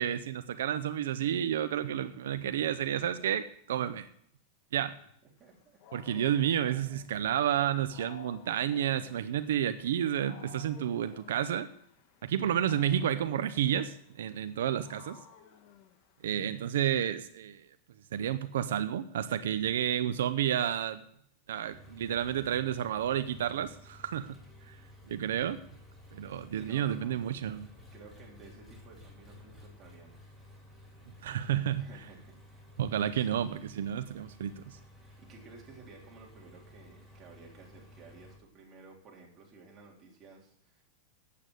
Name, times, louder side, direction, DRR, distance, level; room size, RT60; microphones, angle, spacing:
voice 1, 0.0-4.1 4.7-4.9 5.9-11.7 12.2-15.2 16.2-17.6 18.1-21.0 21.5-24.4 24.7-24.8 25.1-25.6 26.1-27.7 31.2-31.9 32.8-34.8, right 10 dB, 85° right, 11 dB, 0.6 m, -31 dB
Wild animals, 5.4-16.6, left 9 dB, 45° left, 1.4 m, -55 dB
voice 2, 5.4-5.8 26.5-27.2 27.9-30.4 31.7-32.7 33.0-33.5 35.0-40.8, right 4 dB, 25° right, -2 dB, 3.6 m, -54 dB
Engine, 21.7-38.4, left 1 dB, 5° left, 2.4 m, -54 dB
8.5 x 8.3 x 9.2 m, 0.68 s
supercardioid pair, 150°, 0 cm